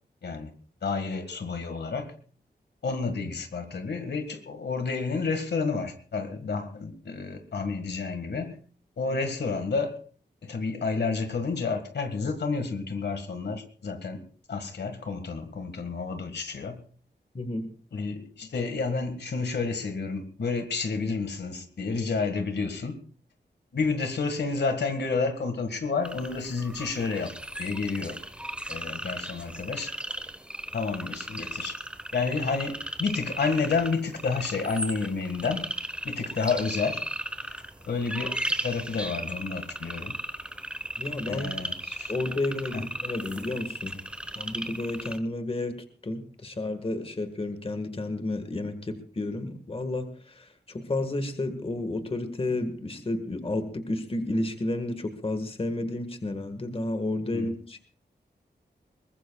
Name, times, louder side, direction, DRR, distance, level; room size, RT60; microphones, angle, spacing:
voice 1, 0.8-2.1 2.8-8.6 9.0-10.0 10.4-14.2 14.5-16.8 17.9-23.0 23.7-27.3 27.6-28.2 28.7-29.9 30.7-31.7 32.1-35.6 36.0-37.0 37.4-40.1 41.3-42.1 42.7-42.8 57.3-57.5, left 4 dB, 80° left, 8 dB, 1.8 m, -30 dB
voice 2, 17.3-17.7 41.0-41.5 41.9-44.0 44.3-57.8, left 2 dB, 35° left, 8 dB, 1.6 m, -31 dB
sound 1, 26.0-45.2, right 1 dB, 5° right, 1.0 m, -36 dB
22.0 x 20.0 x 2.4 m, 0.42 s
wide cardioid pair, 130°, 17 cm